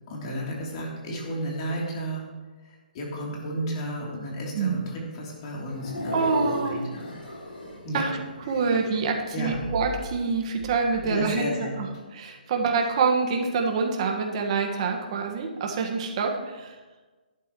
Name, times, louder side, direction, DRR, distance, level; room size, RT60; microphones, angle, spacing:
voice 1, 0.1-2.3 2.6-7.1 7.8-8.1 8.5-8.8 9.3-9.6 11.0-11.8, equal, 40° left, -2 dB, 3.2 m, -33 dB
sound 1, 5.3-9.1 9.4-11.0, left 1 dB, 90° left, 3.5 m, -36 dB
voice 2, 6.1-6.8 7.9-8.2 8.5-16.7, right 4 dB, 40° right, 2 dB, 1.6 m, -26 dB
13.0 x 11.5 x 3.1 m, 1.3 s
hypercardioid pair, 155°, 5 cm